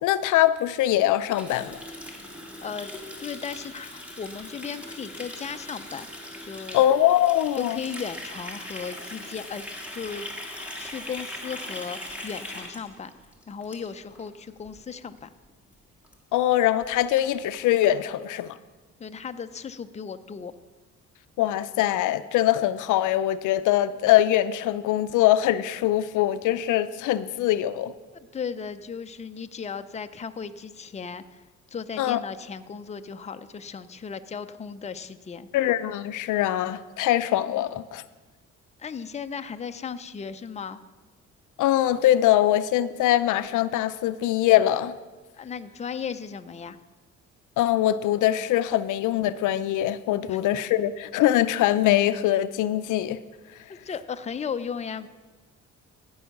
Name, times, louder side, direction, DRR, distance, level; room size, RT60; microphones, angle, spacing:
voice 1, 0.0-1.8 6.7-7.8 16.3-18.6 21.4-27.9 32.0-32.2 35.5-38.0 41.6-44.9 47.6-53.2, left 13 dB, 80° left, 0.5 m, -22 dB
Water tap faucet, 1.3-14.3 14.6-14.8 15.1-15.5 15.7-15.8 16.0-16.1 16.5-16.6 16.8-17.9, left 1 dB, 5° right, 1.7 m, -40 dB
voice 2, 2.6-2.9 3.2-6.1 6.4-6.8 7.5-10.3 10.7-13.1 13.5-15.3 19.0-20.5 28.3-35.5 38.8-40.8 45.4-46.8 50.3-50.4 53.7-55.1, left 6 dB, 25° left, 0.5 m, -36 dB
14.5 x 5.5 x 5.9 m
cardioid pair, 90°, 30 cm